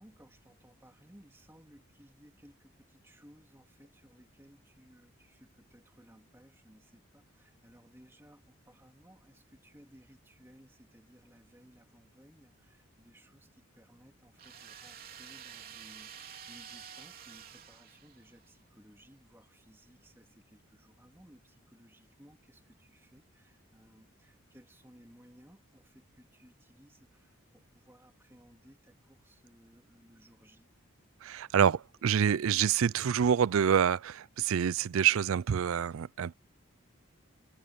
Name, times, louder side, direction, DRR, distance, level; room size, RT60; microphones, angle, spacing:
voice 1, 0.0-30.7, equal, 10° right, 2.9 m, -60 dB
sound 1, 14.4-18.5, right 8 dB, 45° right, 3.8 m, -49 dB
voice 2, 31.2-36.3, right 8 dB, 75° right, 0.4 m, -27 dB
head